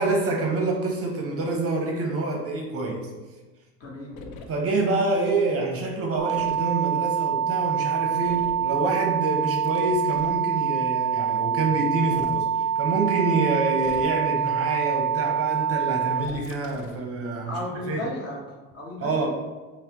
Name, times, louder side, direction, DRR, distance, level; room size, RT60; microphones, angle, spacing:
voice 1, 0.0-3.1 4.5-17.6 17.9-18.0 19.0-19.3, right 3 dB, 35° right, 1 dB, 0.6 m, -26 dB
voice 2, 3.8-4.2 17.5-19.3, left 1 dB, 35° left, -2 dB, 1.1 m, -34 dB
sound 1, 4.1-4.5 6.3-6.6 8.2-8.7 9.6-10.4 11.9-12.4 13.8-14.3 16.2-17.0, left 4 dB, 75° left, 0.6 m, -43 dB
sound 2, 6.2-16.2, right 7 dB, 5° left, 0.6 m, -25 dB
5.5 x 2.0 x 2.9 m, 1.3 s
supercardioid pair, 105°, 40 cm